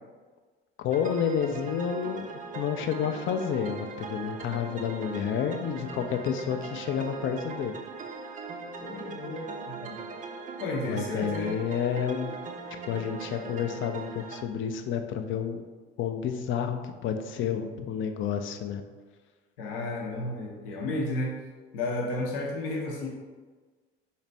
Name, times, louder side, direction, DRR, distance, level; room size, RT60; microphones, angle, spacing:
voice 1, 0.8-7.7 10.9-12.4 12.9-15.7 16.0-18.8, left 8 dB, 45° left, 6 dB, 0.5 m, -30 dB
sound 1, 0.9-14.4, right 4 dB, 30° right, 0.4 m, -40 dB
voice 2, 8.8-10.0 10.6-11.6 19.6-21.4 21.7-23.1, left 2 dB, 70° left, -1 dB, 0.7 m, -32 dB
4.1 x 2.4 x 3.2 m, 1.4 s
figure-of-eight pair, 55°, 29 cm